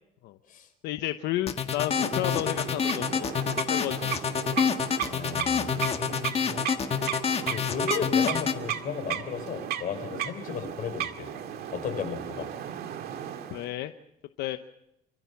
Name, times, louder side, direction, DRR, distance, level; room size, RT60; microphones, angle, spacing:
voice 1, 0.8-3.4 3.7-4.1 13.5-13.9 14.4-14.6, left 14 dB, 90° left, 9 dB, 0.9 m, -32 dB
sound 1, 1.5-8.6, left 6 dB, 35° left, 1.7 m, -27 dB
sound 2, 1.9-13.7, right 10 dB, 70° right, 2.0 m, -35 dB
voice 2, 5.0-6.8 7.5-11.3 11.7-12.5, left 6 dB, 55° left, 7 dB, 4.8 m, -35 dB
28.0 x 15.0 x 7.2 m, 0.84 s
cardioid pair, 110°, 17 cm